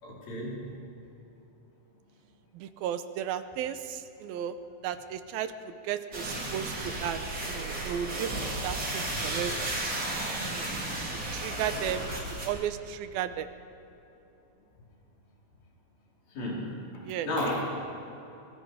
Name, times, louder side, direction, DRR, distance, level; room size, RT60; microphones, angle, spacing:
voice 1, 0.0-0.7 16.3-17.6, left 1 dB, 80° left, -5 dB, 6.8 m, -33 dB
voice 2, 2.6-4.6 4.8-5.5 5.8-8.3 8.6-9.7 10.5-10.7 11.3-12.1 12.4-13.5 17.0-17.3, right 9 dB, 85° right, 11 dB, 2.7 m, -34 dB
sound 1, 6.1-12.5, right 2 dB, 25° right, 3.7 m, -33 dB
25.0 x 24.5 x 5.0 m, 3.0 s
omnidirectional pair, 4.3 m